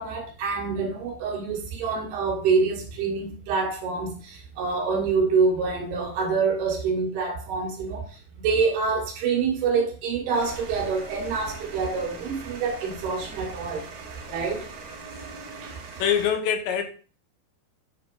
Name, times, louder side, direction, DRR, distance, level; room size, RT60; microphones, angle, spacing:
voice 1, 0.0-8.1 8.4-13.8 14.3-14.6 15.6-15.8, right 5 dB, 70° right, 3.8 m, -26 dB
sound 1, 10.3-16.3, right 3 dB, 50° right, 2.0 m, -41 dB
voice 2, 14.3-14.7 16.0-16.8, left 8 dB, 85° left, 3.4 m, -25 dB
9.6 x 4.2 x 5.3 m
omnidirectional pair, 5.0 m